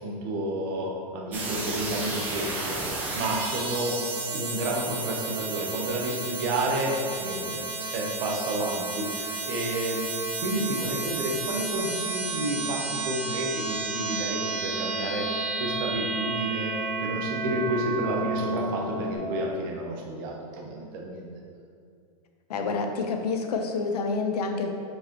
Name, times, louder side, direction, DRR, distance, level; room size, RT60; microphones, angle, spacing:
voice 1, 0.0-10.1 10.4-16.7 17.0-21.3, right 1 dB, 35° right, -2 dB, 0.9 m, -31 dB
sound 1, 1.3-19.2, right 3 dB, 10° right, 0.5 m, -32 dB
voice 2, 22.5-24.7, left 4 dB, 90° left, 5 dB, 0.8 m, -28 dB
7.2 x 4.8 x 3.0 m, 2.3 s
supercardioid pair, 175°, 19 cm